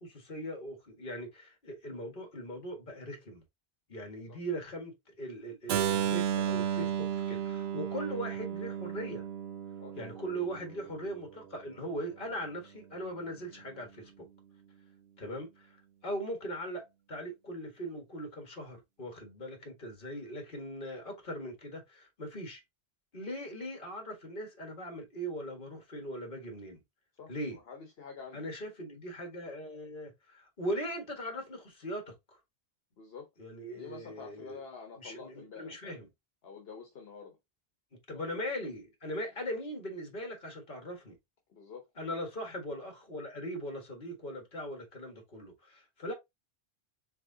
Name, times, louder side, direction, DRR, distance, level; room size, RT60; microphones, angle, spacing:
voice 1, 0.0-3.4 3.9-9.2 10.0-14.3 15.2-22.6 23.1-26.8 27.3-27.6 28.3-32.2 33.4-34.6 35.0-36.1 38.1-41.2 42.0-46.1, equal, 55° left, 1.7 m, -40 dB
Keyboard (musical), 5.7-11.5, right 9 dB, 80° right, 0.9 m, -34 dB
voice 2, 9.8-10.1 15.3-15.4 27.2-28.5 33.0-33.3 33.7-36.0 36.4-37.4 41.5-41.9, left 5 dB, 70° left, 1.2 m, -48 dB
4.6 x 3.8 x 2.7 m
omnidirectional pair, 1.1 m